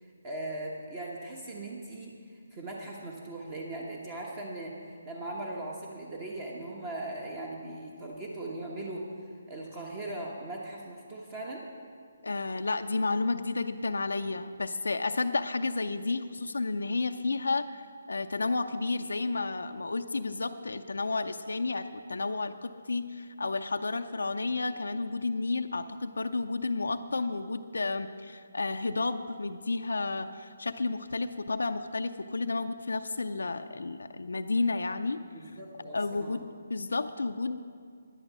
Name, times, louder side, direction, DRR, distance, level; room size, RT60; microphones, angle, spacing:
voice 1, 0.0-9.1 9.5-11.6 35.3-36.4, right 2 dB, 25° right, -1 dB, 1.2 m, -39 dB
voice 2, 12.2-35.2 35.9-37.6, left 3 dB, 85° left, 7 dB, 0.5 m, -31 dB
11.0 x 10.5 x 6.1 m, 2.1 s
hypercardioid pair, 155°, 0 cm